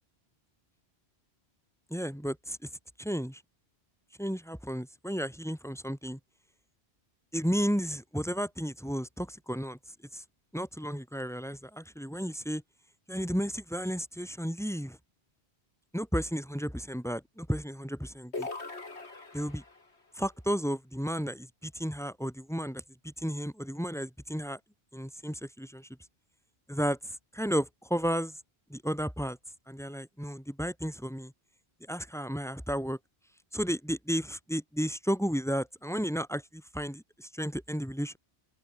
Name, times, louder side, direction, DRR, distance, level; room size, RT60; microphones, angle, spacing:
voice 1, 1.9-2.7 3.0-3.4 4.2-6.2 7.3-9.8 10.1-10.2 10.5-12.6 13.1-15.0 15.9-18.5 19.3-19.6 20.2-24.6 24.9-25.9 26.7-28.3 28.7-29.4 29.7-31.3 31.9-33.0 33.5-38.2, equal, ahead, 3.7 m, -33 dB
sound 1, 18.3-19.9, left 3 dB, 90° left, 3.3 m, -40 dB
open air
omnidirectional pair, 1.1 m